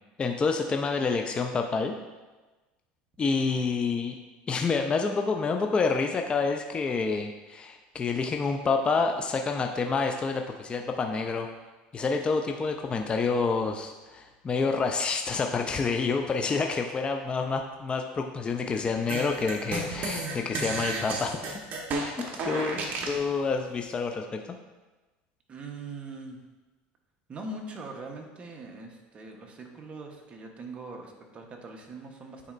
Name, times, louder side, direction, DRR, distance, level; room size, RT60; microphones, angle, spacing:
voice 1, 0.2-1.9 3.2-4.1 4.5-11.5 11.9-21.6 22.0-22.1 22.4-24.6, left 4 dB, 25° left, 4 dB, 0.5 m, -28 dB
sound 1, 19.1-23.2, right 2 dB, 50° right, 1.2 m, -32 dB
voice 2, 22.7-23.1 25.5-26.4 27.3-32.5, right 2 dB, 30° right, 2 dB, 1.0 m, -42 dB
9.5 x 4.1 x 2.6 m, 1.2 s
supercardioid pair, 105°, 4 cm